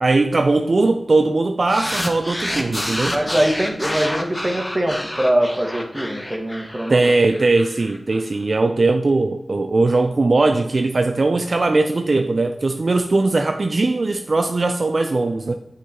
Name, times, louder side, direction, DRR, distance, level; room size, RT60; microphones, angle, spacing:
voice 1, 0.0-3.2 6.9-15.5, right 3 dB, 65° right, 6 dB, 0.3 m, -19 dB
sound 1, 1.7-8.2, left 1 dB, 15° left, 0.8 m, -29 dB
voice 2, 3.1-7.1, right 1 dB, 30° right, 3 dB, 1.1 m, -22 dB
6.4 x 3.9 x 4.1 m, 0.91 s
cardioid pair, 45°, 0 cm